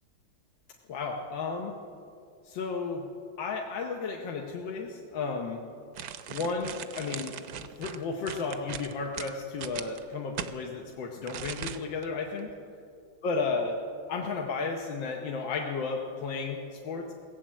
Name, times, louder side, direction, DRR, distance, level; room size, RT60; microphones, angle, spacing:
voice 1, 0.9-1.8 2.4-3.1 3.4-5.6 6.3-7.3 7.8-12.5 13.2-13.8 14.1-17.1, left 4 dB, 75° left, 1 dB, 1.7 m, -33 dB
sound 1, 5.9-10.5 11.3-12.1 12.4-12.5, right 9 dB, 65° right, 1.0 m, -39 dB
17.5 x 8.7 x 7.4 m, 2.4 s
omnidirectional pair, 2.1 m